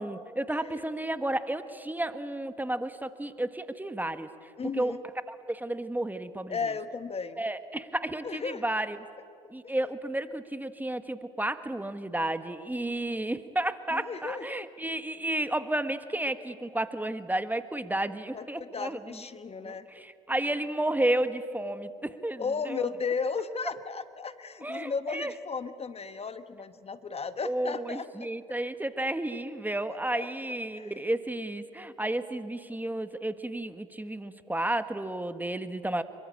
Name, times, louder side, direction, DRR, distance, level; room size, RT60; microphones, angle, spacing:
voice 1, 0.0-4.3 4.8-4.9 5.3-6.6 7.4-9.0 9.5-19.0 19.6-22.9 24.6-25.3 27.4-36.0, right 1 dB, 10° right, 11 dB, 1.5 m, -32 dB
voice 2, 4.6-5.0 6.5-7.4 8.2-8.6 9.6-9.7 13.9-14.7 18.3-19.9 22.4-28.3 29.9-30.3 30.7-31.0, left 5 dB, 35° left, 11 dB, 1.4 m, -35 dB
27.0 x 23.5 x 8.5 m, 2.4 s
hypercardioid pair, 55°, 17 cm